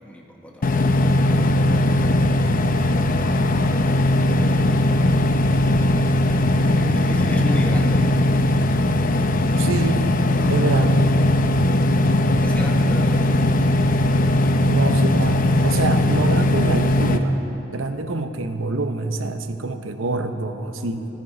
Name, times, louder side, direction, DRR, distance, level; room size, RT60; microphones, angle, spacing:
voice 1, 0.0-1.5 6.6-8.0 12.4-13.9, equal, 5° left, 0 dB, 1.3 m, -34 dB
sound 1, 0.6-17.2, left 1 dB, 45° left, 0.6 m, -19 dB
voice 2, 9.6-10.1 10.5-11.2 14.6-17.4 17.7-21.1, right 3 dB, 90° right, 8 dB, 0.8 m, -26 dB
14.0 x 13.5 x 4.9 m, 2.9 s
head